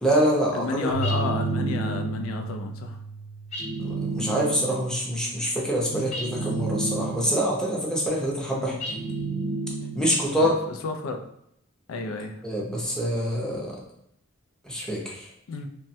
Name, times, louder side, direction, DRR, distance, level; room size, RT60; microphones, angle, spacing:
voice 1, 0.0-0.9 3.8-9.0 9.9-10.5 12.4-13.8 14.6-15.3, equal, 5° left, -3 dB, 0.5 m, -25 dB
voice 2, 0.5-3.0 5.9-6.1 8.5-8.8 10.4-10.5 10.8-11.3 11.9-12.4 15.5-15.7, left 3 dB, 85° left, 6 dB, 0.4 m, -31 dB
Keyboard (musical), 0.9-4.4, right 3 dB, 70° right, 0.5 m, -33 dB
sound 1, 1.0-2.4 3.5-4.9 6.1-7.5 8.8-10.2, right 3 dB, 35° left, 0.8 m, -31 dB
3.2 x 2.1 x 2.6 m, 0.78 s
head